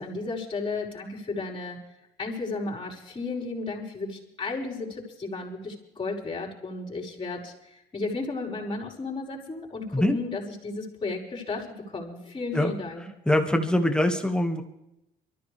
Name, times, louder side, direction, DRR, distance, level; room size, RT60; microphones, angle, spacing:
voice 1, 0.0-1.8 2.2-13.1, left 3 dB, 30° left, -1 dB, 5.4 m, -34 dB
voice 2, 13.3-14.6, left 1 dB, 5° left, 5 dB, 1.9 m, -23 dB
23.5 x 14.5 x 3.5 m, 0.86 s
cardioid pair, 110°, 17 cm